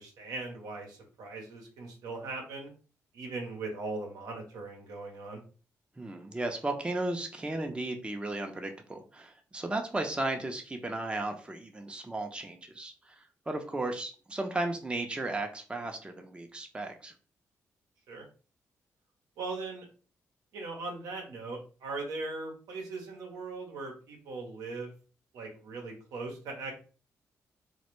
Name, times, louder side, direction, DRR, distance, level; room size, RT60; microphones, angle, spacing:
voice 1, 0.0-2.7 3.1-5.4 18.1-18.2 19.4-19.9 20.5-24.9 25.3-26.7, right 3 dB, 85° right, 1 dB, 0.7 m, -39 dB
voice 2, 6.0-17.1, right 2 dB, 15° right, 4 dB, 0.5 m, -35 dB
2.1 x 2.1 x 3.0 m, 0.37 s
supercardioid pair, 55°, 6 cm